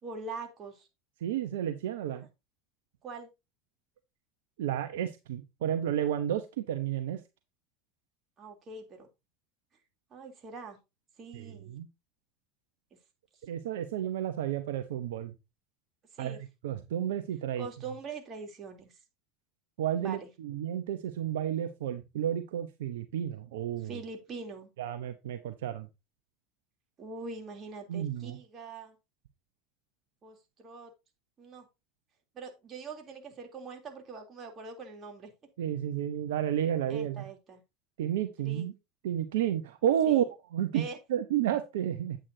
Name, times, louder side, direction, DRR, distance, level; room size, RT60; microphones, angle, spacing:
voice 1, 0.0-0.9 2.0-2.2 3.0-3.3 8.4-9.1 10.1-10.8 11.2-11.8 16.1-16.4 17.6-19.0 20.0-20.3 23.8-24.7 27.0-29.0 30.2-30.9 31.4-31.7 32.3-35.3 36.9-37.6 38.4-38.7 40.1-40.2 40.7-41.0, right 4 dB, 40° right, 3.2 m, -43 dB
voice 2, 1.2-2.3 4.6-7.2 11.3-11.9 13.4-15.3 16.2-16.4 16.6-17.7 19.8-24.0 24.8-25.9 27.9-28.4 35.6-37.2 38.0-38.7 39.0-40.2 40.5-40.8 41.1-42.2, right 10 dB, 75° right, 0.9 m, -31 dB
9.1 x 8.7 x 2.8 m
hypercardioid pair, 80°, 0 cm